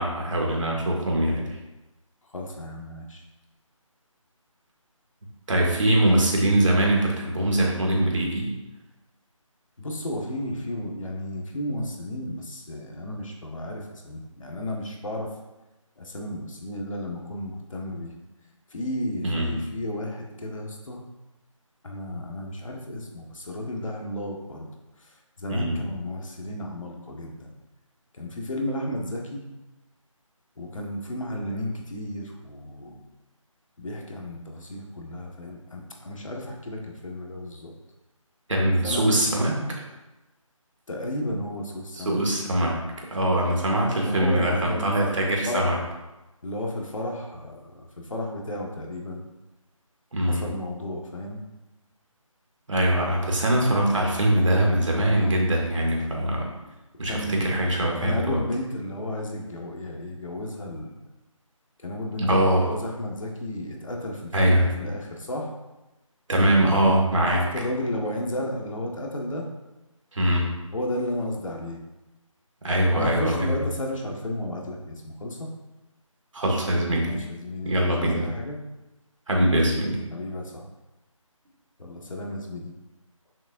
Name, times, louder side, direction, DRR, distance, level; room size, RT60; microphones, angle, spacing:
voice 1, 0.0-1.5 5.5-8.5 19.2-19.5 25.5-25.8 38.5-39.6 42.0-42.8 43.1-45.8 50.1-50.5 52.7-56.5 57.0-58.4 62.2-62.7 64.3-64.7 66.3-67.4 70.1-70.5 72.6-73.6 76.3-77.1 77.6-78.3 79.3-80.0, right 1 dB, 60° right, -1 dB, 2.0 m, -22 dB
voice 2, 2.3-3.2 9.8-15.3 16.0-18.1 18.7-21.0 21.8-24.7 25.0-27.5 28.1-29.4 30.6-33.0 33.8-37.7 38.8-39.2 40.9-42.2 44.0-45.1 45.4-45.7 46.4-49.2 50.2-51.4 57.0-57.4 58.0-60.9 61.8-65.5 67.3-69.5 70.7-71.8 72.9-75.5 77.0-78.6 80.1-80.7 81.8-82.7, left 1 dB, 70° left, 0 dB, 1.6 m, -33 dB
6.7 x 6.5 x 2.6 m, 1.0 s
figure-of-eight pair, 170°, 18 cm